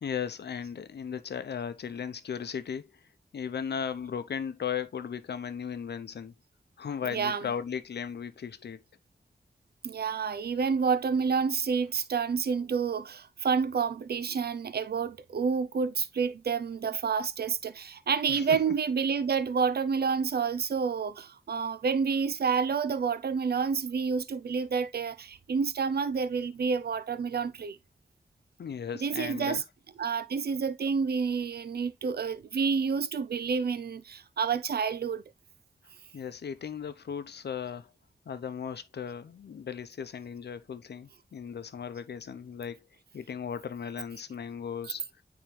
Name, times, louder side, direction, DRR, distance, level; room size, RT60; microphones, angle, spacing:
voice 1, 0.0-2.9 3.3-6.3 6.8-8.8 18.3-18.8 28.6-29.7 36.1-37.9 38.3-42.9 43.1-45.0, left 7 dB, 90° left, 0.7 m, -36 dB
voice 2, 7.0-7.5 9.8-27.8 28.9-29.6 30.0-35.2 44.8-44.9, right 6 dB, 70° right, 0.6 m, -29 dB
9.1 x 3.6 x 3.1 m
cardioid pair, 60°, 17 cm